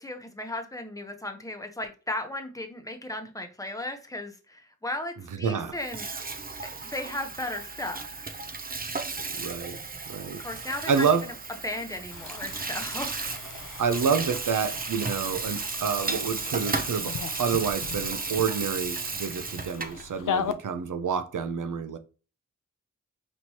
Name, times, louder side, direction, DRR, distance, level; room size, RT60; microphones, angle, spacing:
voice 1, 0.0-6.1 6.9-8.1 10.4-11.0 11.6-13.3, left 1 dB, 10° left, 0.9 m, -35 dB
voice 2, 5.4-5.8 9.4-9.8 10.1-11.3 13.8-22.0, right 6 dB, 80° right, 0.6 m, -28 dB
Water tap faucet / Sink (filling or washing), 5.7-20.0, right 4 dB, 30° right, 0.5 m, -34 dB
sound 1, 12.1-20.5, left 7 dB, 85° left, 0.5 m, -38 dB
4.3 x 3.1 x 2.8 m
wide cardioid pair, 55°, 31 cm